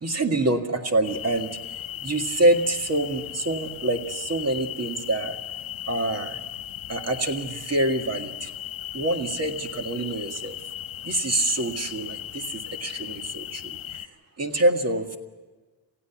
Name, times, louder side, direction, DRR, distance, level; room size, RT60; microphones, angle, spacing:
voice 1, 0.0-1.5 2.0-5.4 5.9-6.4 6.9-8.5 8.9-10.6 11.0-13.8 14.4-15.2, right 1 dB, 30° right, 5 dB, 1.9 m, -26 dB
sound 1, 1.0-14.1, left 12 dB, 80° left, 1.2 m, -37 dB
28.5 x 15.5 x 6.0 m, 1.3 s
wide cardioid pair, 145°, 46 cm